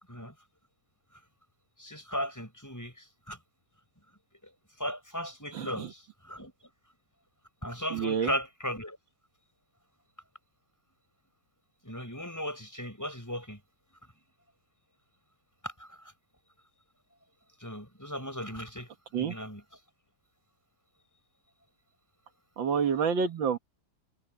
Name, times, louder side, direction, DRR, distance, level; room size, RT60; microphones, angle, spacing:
voice 1, 1.8-3.4 4.8-6.5 7.6-9.0 11.8-13.6 15.6-16.0 17.6-18.9 19.2-19.6, equal, 10° left, 6.7 m, -37 dB
voice 2, 5.5-5.9 7.9-8.3 19.1-19.4 22.6-23.6, right 6 dB, 80° right, 2.2 m, -28 dB
omnidirectional pair, 2.1 m